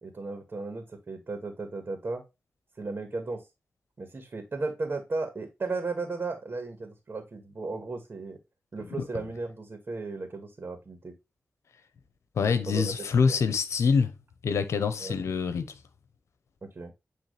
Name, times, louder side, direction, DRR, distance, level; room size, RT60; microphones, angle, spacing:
voice 1, 0.0-2.2 2.8-3.5 4.0-8.4 8.7-11.1 12.7-12.9 13.3-13.4 15.0-15.2 16.6-16.9, right 3 dB, 50° right, 2.0 m, -35 dB
voice 2, 12.4-14.1 14.4-15.7, left 5 dB, 85° left, 0.9 m, -25 dB
9.3 x 3.4 x 3.4 m
cardioid pair, 60°, 5 cm